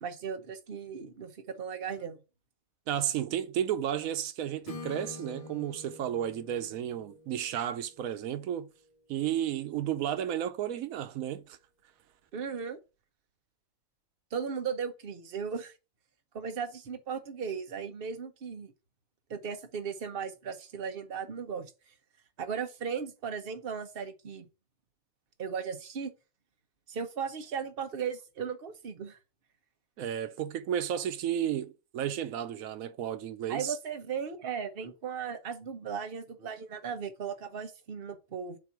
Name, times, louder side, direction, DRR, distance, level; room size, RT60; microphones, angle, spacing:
voice 1, 0.0-2.2 12.3-12.8 14.3-15.7 16.3-18.7 19.3-21.7 22.4-24.5 25.4-26.1 26.9-29.2 33.5-38.6, right 6 dB, 45° right, 1.1 m, -36 dB
voice 2, 2.9-8.7 9.1-11.6 30.0-33.8, right 10 dB, 90° right, 1.1 m, -33 dB
Acoustic guitar / Strum, 4.6-8.6, left 3 dB, 30° left, 0.8 m, -47 dB
7.4 x 2.7 x 5.9 m
omnidirectional pair, 1.4 m